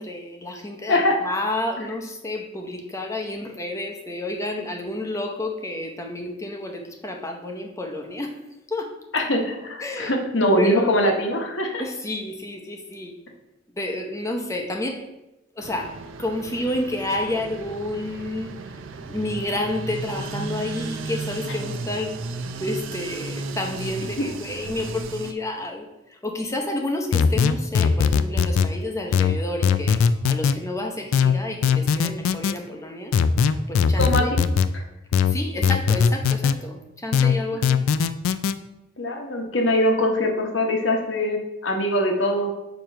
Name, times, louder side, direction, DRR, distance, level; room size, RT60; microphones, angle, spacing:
voice 1, 0.0-1.0 1.3-8.3 8.7-8.9 9.8-10.1 10.6-11.0 11.8-13.1 13.8-15.0 15.6-15.9 16.2-18.5 19.1-22.1 22.6-25.8 26.2-30.0 30.3-33.1 33.7-34.3 35.3-37.8, left 1 dB, 15° left, 3 dB, 0.7 m, -30 dB
voice 2, 0.9-1.2 1.8-1.9 9.1-11.8 21.5-21.6 24.2-24.3 34.0-34.4 34.7-34.8 37.5-37.6 39.0-42.5, left 1 dB, 65° left, 2 dB, 1.1 m, -22 dB
sound 1, 15.6-25.3, right 3 dB, 70° right, 0.5 m, -34 dB
sound 2, 27.1-28.7 29.1-30.6 31.1-32.5 33.1-34.7 35.1-36.6 37.1-38.5, left 6 dB, 85° left, 0.3 m, -19 dB
6.8 x 3.0 x 5.4 m, 0.94 s
head